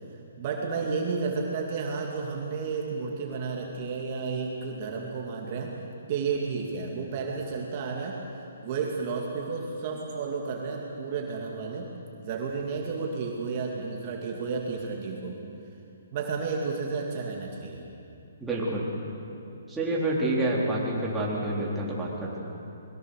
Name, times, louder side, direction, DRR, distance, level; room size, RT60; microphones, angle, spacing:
voice 1, 0.4-8.2 8.6-11.9 12.2-15.4 16.1-17.8, right 4 dB, 40° right, -1 dB, 2.5 m, -32 dB
voice 2, 18.4-18.9 19.7-22.4, right 1 dB, 5° right, -6 dB, 3.8 m, -28 dB
21.5 x 20.5 x 6.6 m, 2.8 s
hypercardioid pair, 150°, 0 cm